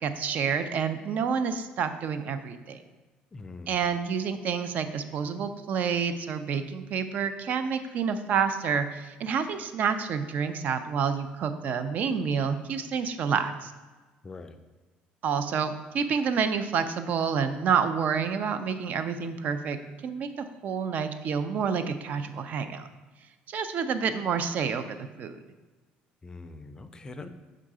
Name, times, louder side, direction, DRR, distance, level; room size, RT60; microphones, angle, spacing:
voice 1, 0.0-2.8 3.7-13.7 15.2-19.8 20.0-22.9 23.5-25.4, right 6 dB, 50° right, 10 dB, 0.5 m, -28 dB
voice 2, 3.3-3.8 14.2-14.6 26.2-27.3, left 3 dB, 20° left, 9 dB, 0.4 m, -43 dB
5.5 x 3.7 x 4.8 m, 1.3 s
cardioid pair, 120°, 3 cm